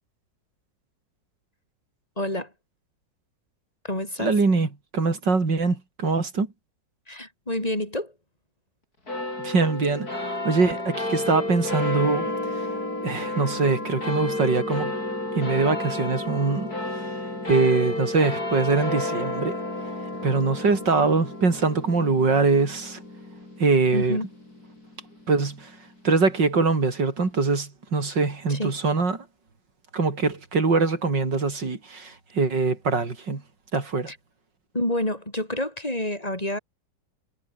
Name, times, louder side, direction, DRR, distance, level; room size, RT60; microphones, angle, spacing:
voice 1, 2.2-2.5 3.8-4.3 7.1-8.1 21.0-21.1 23.9-24.3 28.5-28.7 34.1-34.2 34.7-36.6, left 1 dB, 20° left, 5.4 m, -28 dB
voice 2, 4.2-6.5 9.4-12.7 13.0-14.9 15.3-16.7 17.5-19.6 20.2-23.0 23.6-24.2 25.3-25.7 26.0-29.2 29.9-33.4 33.7-34.1, right 4 dB, 85° right, 4.6 m, -23 dB
sound 1, 9.1-25.8, left 2 dB, 55° left, 8.7 m, -31 dB
omnidirectional pair, 1.9 m